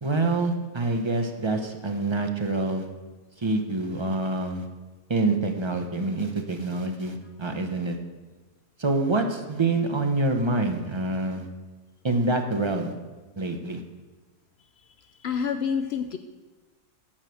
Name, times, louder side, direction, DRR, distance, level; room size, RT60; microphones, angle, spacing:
voice 1, 0.0-2.9 3.4-4.7 5.1-8.0 8.8-11.5 12.0-12.9 13.4-13.8, right 2 dB, 30° right, 4 dB, 0.5 m, -26 dB
voice 2, 14.9-16.2, left 6 dB, 90° left, 8 dB, 0.5 m, -29 dB
10.0 x 4.8 x 7.6 m, 1.2 s
omnidirectional pair, 1.6 m